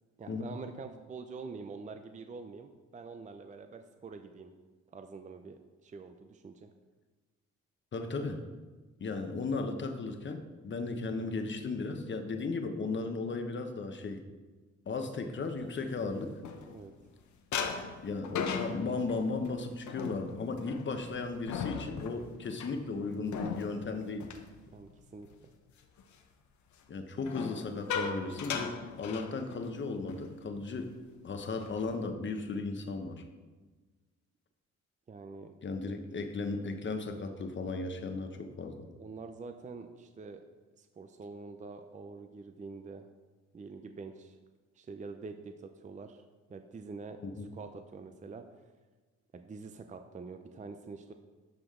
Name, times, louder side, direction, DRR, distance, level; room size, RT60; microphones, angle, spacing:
voice 1, 0.2-4.5 4.9-6.7 16.7-16.9 24.7-25.3 35.1-35.5 39.0-40.4 40.8-43.1 43.5-44.4 44.8-46.2 46.5-47.2 47.5-48.4 49.3-51.1, right 4 dB, 25° right, 7 dB, 0.6 m, -46 dB
voice 2, 7.9-8.4 9.0-14.2 14.9-16.3 18.0-24.2 26.9-30.9 31.2-33.2 35.6-38.8 47.2-47.5, left 3 dB, 40° left, 6 dB, 1.1 m, -36 dB
sound 1, 15.6-17.1 17.5-25.3 25.7-26.0 27.2-29.8 30.1-30.3 30.6-30.9 31.4-32.0, left 6 dB, 70° left, 1.0 m, -39 dB
12.0 x 5.0 x 3.8 m, 1.3 s
cardioid pair, 90°, 30 cm